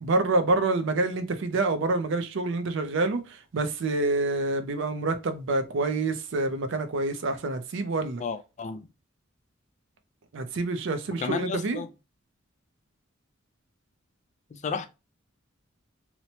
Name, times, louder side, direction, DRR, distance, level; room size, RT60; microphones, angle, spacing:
voice 1, 0.0-8.2 10.3-11.8, right 2 dB, 65° right, 0.5 m, -27 dB
voice 2, 8.2-8.9 11.1-11.9 14.5-14.9, left 5 dB, 35° left, 0.3 m, -32 dB
2.8 x 2.1 x 2.7 m
head